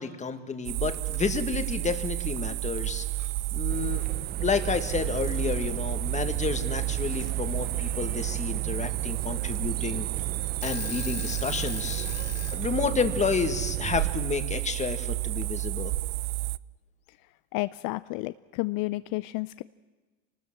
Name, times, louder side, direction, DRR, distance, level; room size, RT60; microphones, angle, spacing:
voice 1, 0.0-3.1 3.5-4.0 4.4-10.1 10.6-12.1 12.5-15.9, left 5 dB, 20° left, 8 dB, 1.7 m, -30 dB
sound 1, 0.6-16.6, right 17 dB, 75° right, 0.7 m, -31 dB
Alarm / Clock, 0.9-1.7 2.9-3.0 3.2-4.0 5.2-5.8 7.2-7.3 8.1-8.5 8.9-9.0 9.4-9.6 10.1-10.2 10.5-12.6, left 11 dB, 40° left, 1.6 m, -40 dB
sound 2, 3.7-14.2, right 8 dB, 25° right, 0.9 m, -40 dB
voice 2, 17.5-19.6, left 21 dB, 55° left, 15 dB, 0.6 m, -31 dB
26.0 x 20.0 x 7.4 m, 1.3 s
cardioid pair, 140°, 39 cm